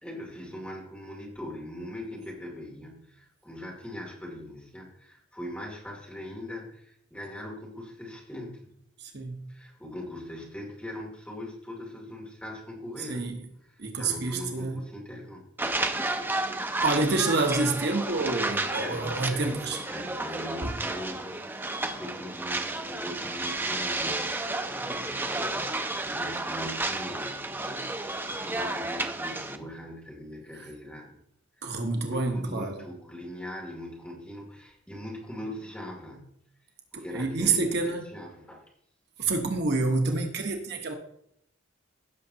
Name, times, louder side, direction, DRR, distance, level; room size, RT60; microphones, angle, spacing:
voice 1, 0.0-8.7 9.5-13.3 13.7-15.4 18.8-31.2 31.6-31.8 32.1-36.4 36.9-37.6 38.0-38.6, left 1 dB, 5° left, -2 dB, 2.7 m, -41 dB
voice 2, 9.0-9.5 13.1-13.4 13.8-14.8 16.8-19.8 20.6-20.7 31.6-32.8 36.9-38.0 39.2-40.9, right 3 dB, 60° right, 3 dB, 1.2 m, -28 dB
sound 1, 15.6-29.6, right 2 dB, 10° right, 0.5 m, -32 dB
16.5 x 6.5 x 2.9 m, 0.71 s
head